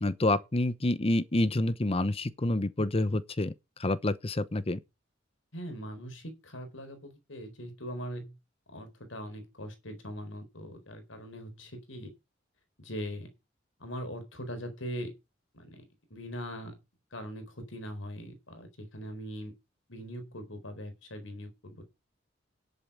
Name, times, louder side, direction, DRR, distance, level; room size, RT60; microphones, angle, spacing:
voice 1, 0.0-3.5 3.8-4.8, left 1 dB, 30° left, 0.8 m, -28 dB
voice 2, 5.5-8.4 8.7-12.1 12.8-13.3 13.8-15.1 15.5-15.8 16.1-16.8 17.1-19.5 19.9-21.8, equal, 90° left, 4.3 m, -41 dB
11.0 x 8.0 x 5.6 m
head